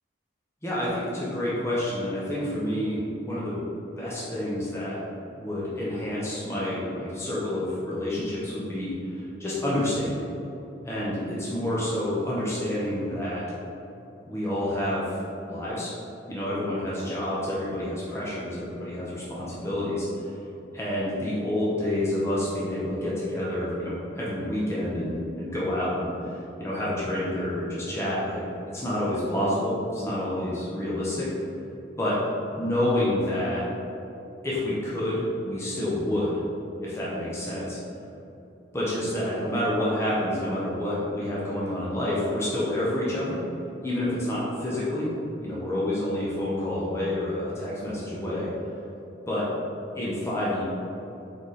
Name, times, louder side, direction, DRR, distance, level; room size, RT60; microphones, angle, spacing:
voice 1, 0.6-3.6 4.0-10.3 10.8-13.5 14.3-15.9 16.3-20.1 20.7-26.1 26.6-28.4 28.7-31.3 32.0-32.2 32.6-33.7 34.4-36.4 36.8-37.8 38.7-43.4 43.8-45.1 45.4-48.5 49.3-49.5 49.9-50.6, left 1 dB, 15° left, -8 dB, 0.7 m, -28 dB
4.1 x 4.0 x 3.2 m, 2.8 s
head